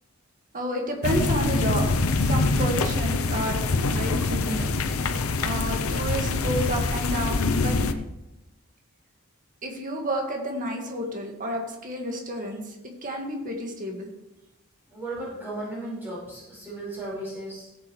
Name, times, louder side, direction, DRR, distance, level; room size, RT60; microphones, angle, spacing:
voice 1, 0.5-1.9 2.2-4.7 5.4-7.8 9.6-12.8 13.0-14.1, right 1 dB, 40° right, 1 dB, 1.9 m, -30 dB
sound 1, 1.0-7.9, left 3 dB, 85° left, 0.8 m, -25 dB
voice 2, 14.9-17.7, right 1 dB, 10° right, -7 dB, 4.9 m, -35 dB
17.0 x 8.6 x 3.3 m, 0.95 s
head